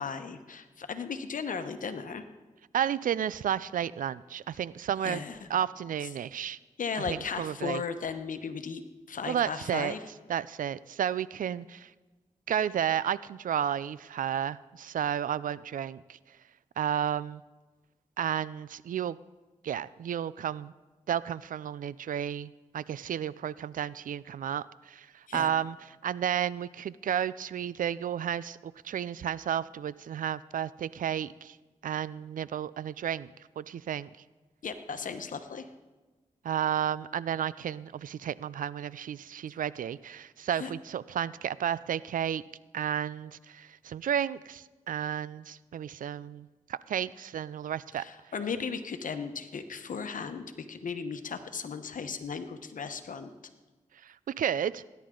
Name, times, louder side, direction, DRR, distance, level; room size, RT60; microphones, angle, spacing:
voice 1, 0.0-2.2 5.0-5.4 6.8-8.8 9.1-10.0 25.3-25.5 34.6-35.7 40.6-40.7 48.0-53.3, left 5 dB, 75° left, 8 dB, 1.1 m, -36 dB
voice 2, 2.7-5.2 5.5-6.6 7.1-7.8 9.3-9.9 10.3-11.9 12.5-16.2 16.8-17.4 18.2-19.2 19.6-20.7 21.1-31.6 31.8-33.3 33.6-34.1 36.4-42.4 42.7-48.0 54.0-54.8, right 9 dB, 80° right, 19 dB, 0.4 m, -32 dB
19.0 x 10.5 x 3.8 m, 1.2 s
cardioid pair, 40°, 14 cm